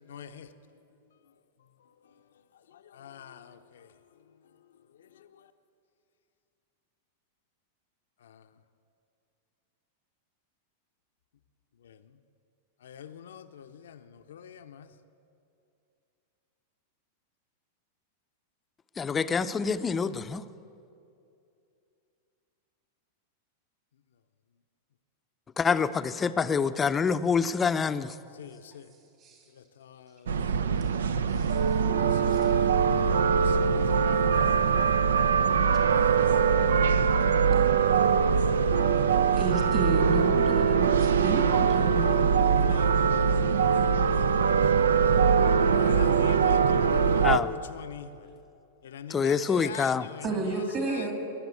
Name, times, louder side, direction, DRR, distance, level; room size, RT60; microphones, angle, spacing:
voice 1, 0.1-0.5 2.9-3.9 11.8-11.9 12.8-14.9 28.4-28.9 29.8-30.5 32.0-34.4 35.9-36.0 36.7-36.8 41.3-41.6 42.3-43.6 43.8-44.0 45.7-48.3 48.8-50.2 50.8-51.1, left 8 dB, 75° left, 0.6 m, -43 dB
voice 2, 19.0-20.4 25.6-28.1 47.2-47.5 49.1-50.1, left 6 dB, 20° left, 0.6 m, -26 dB
sound 1, 30.3-47.4, right 6 dB, 80° right, 0.5 m, -23 dB
voice 3, 31.0-31.8 32.3-32.5 39.3-42.4 50.2-51.1, right 4 dB, 35° right, 2.7 m, -32 dB
21.5 x 7.3 x 8.3 m
hypercardioid pair, 100°, 0 cm